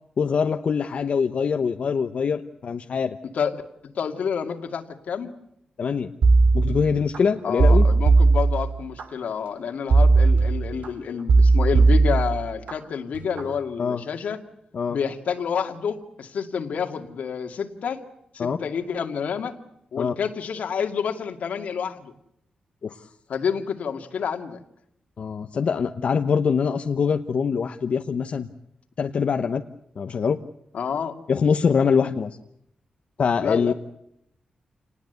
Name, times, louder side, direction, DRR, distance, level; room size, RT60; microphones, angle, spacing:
voice 1, 0.2-3.2 5.8-6.1 6.5-7.8 13.8-14.0 14.7-15.0 18.4-18.6 20.0-20.1 22.8-23.1 25.2-28.5 29.0-29.6 30.0-30.4 31.3-32.4 33.2-33.7, left 6 dB, 60° left, 6 dB, 0.9 m, -23 dB
voice 2, 3.9-5.3 7.4-14.4 14.9-18.0 18.3-19.6 19.9-22.1 23.3-24.6 30.7-31.1 33.4-33.7, left 7 dB, 85° left, 6 dB, 2.3 m, -28 dB
sound 1, 6.2-7.2 7.6-9.0 9.9-10.9 11.3-12.7 13.1-13.5, right 3 dB, 90° right, 2.7 m, -18 dB
28.0 x 19.5 x 8.1 m, 0.76 s
wide cardioid pair, 125°, 2 cm